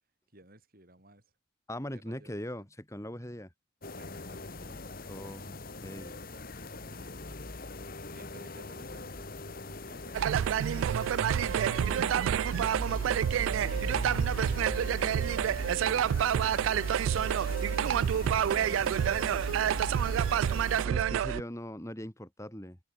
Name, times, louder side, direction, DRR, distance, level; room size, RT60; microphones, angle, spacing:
voice 1, 0.3-1.3 1.8-2.7 3.9-7.2 8.1-17.0, right 2 dB, 50° right, 6.3 m, -57 dB
voice 2, 1.7-3.5 5.1-5.5 5.8-6.1 20.8-22.8, left 1 dB, 15° left, 3.7 m, -40 dB
sound 1, 3.8-20.9, left 2 dB, 50° left, 1.9 m, -41 dB
sound 2, 10.1-21.4, right 9 dB, 85° right, 0.3 m, -28 dB
head